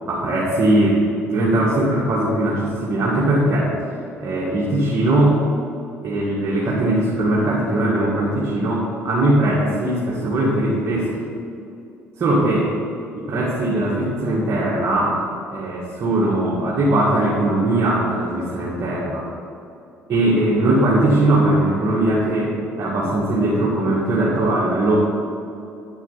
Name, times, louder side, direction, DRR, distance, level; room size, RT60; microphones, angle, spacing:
voice 1, 0.1-3.9 4.2-5.4 6.0-11.1 12.2-12.8 13.1-15.2 15.5-19.3 20.1-24.9, right 1 dB, 45° right, -6 dB, 1.9 m, -20 dB
9.4 x 8.4 x 4.1 m, 2.7 s
hypercardioid pair, 50°, 7 cm